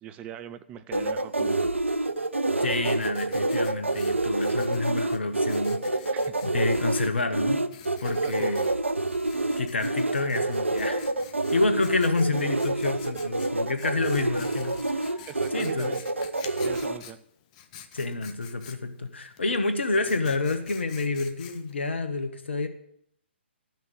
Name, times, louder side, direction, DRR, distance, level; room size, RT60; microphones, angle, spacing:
voice 1, 0.0-1.8 6.1-6.4 8.2-8.5 15.3-16.0 16.6-17.2, right 10 dB, 20° right, 0.6 m, -41 dB
sound 1, 0.9-17.0, right 2 dB, 85° right, 0.7 m, -27 dB
Writing, 2.1-21.9, left 9 dB, 35° left, 0.9 m, -49 dB
voice 2, 2.6-6.1 6.4-7.7 8.0-8.7 9.6-11.0 11.5-15.2 15.5-16.0 17.9-22.7, left 3 dB, 70° left, 1.5 m, -28 dB
sound 2, 8.3-8.9 9.4-9.5 13.5-13.8 14.2-16.1, left 1 dB, 5° left, 5.8 m, -51 dB
12.5 x 6.2 x 7.4 m
figure-of-eight pair, 130°, 6 cm